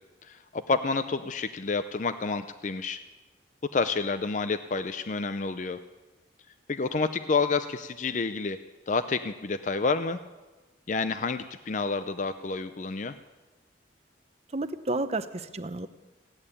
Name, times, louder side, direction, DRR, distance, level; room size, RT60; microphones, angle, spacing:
voice 1, 0.2-3.0 3.6-5.8 6.7-8.6 8.9-10.2 10.9-13.2, left 4 dB, 40° left, 11 dB, 0.5 m, -29 dB
voice 2, 14.5-15.9, right 2 dB, 35° right, 11 dB, 0.7 m, -31 dB
16.5 x 8.8 x 9.9 m, 1.2 s
head